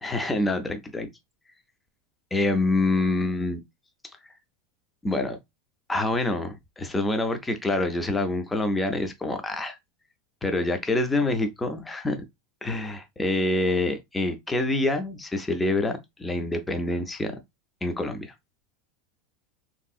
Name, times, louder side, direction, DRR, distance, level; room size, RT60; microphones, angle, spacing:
voice 1, 0.0-1.1 2.3-3.6 5.0-5.4 5.9-9.8 10.4-12.2 12.6-17.4 17.8-18.3, left 2 dB, 10° left, 0.3 m, -26 dB
3.2 x 2.6 x 2.3 m
supercardioid pair, 170°, 0 cm